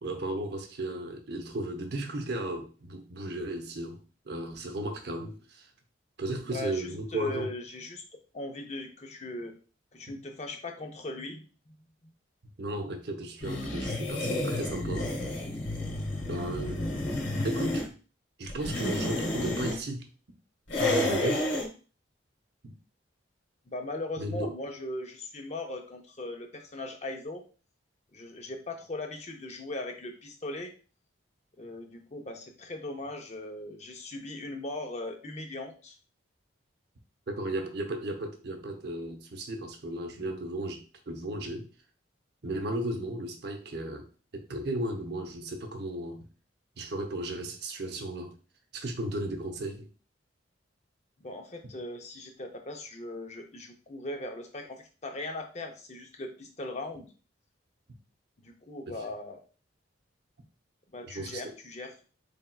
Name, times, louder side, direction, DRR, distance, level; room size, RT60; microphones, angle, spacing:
voice 1, 0.0-5.7 6.2-7.5 12.6-15.1 16.2-16.9 17.4-17.9 18.4-20.1 20.8-21.4 22.6-22.7 24.2-24.5 37.3-41.7 42.4-44.1 44.3-46.2 46.8-48.3 48.7-49.9 58.9-59.0 61.1-61.5, right 1 dB, 55° right, 0.7 m, -35 dB
voice 2, 6.5-8.0 8.3-9.5 9.9-11.4 23.7-27.4 28.1-30.7 31.6-36.0 51.2-57.1 58.4-59.4 60.9-61.9, left 2 dB, 35° left, 0.6 m, -39 dB
sound 1, 13.4-17.9 18.5-19.8 20.7-21.7, left 1 dB, 75° left, 1.3 m, -30 dB
4.4 x 3.4 x 2.3 m
head